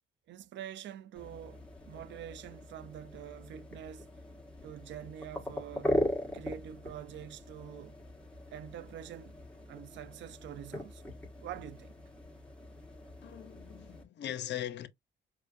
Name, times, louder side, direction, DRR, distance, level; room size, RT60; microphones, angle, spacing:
voice 1, 0.3-4.1 4.6-6.0 6.3-8.0 8.5-9.4 9.7-11.1 11.4-11.9, right 10 dB, 70° right, 0.5 m, -46 dB
sound 1, 1.1-14.0, left 1 dB, 5° left, 1.5 m, -40 dB
voice 2, 13.2-14.9, left 12 dB, 60° left, 0.6 m, -40 dB
4.5 x 2.1 x 2.5 m
cardioid pair, 90°, 20 cm